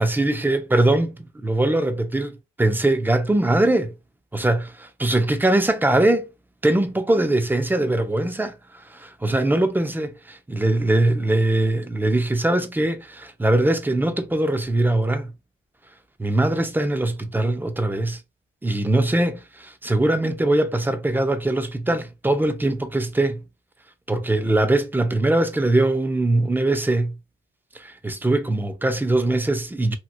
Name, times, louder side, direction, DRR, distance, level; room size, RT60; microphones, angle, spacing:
voice 1, 0.0-3.9 4.3-4.6 5.0-6.3 6.6-8.6 8.9-15.3 16.2-18.2 18.6-23.4 24.1-27.2 27.7-30.0, right 2 dB, 10° right, 0.5 m, -21 dB
2.9 x 2.6 x 2.6 m
cardioid pair, 90°, 20 cm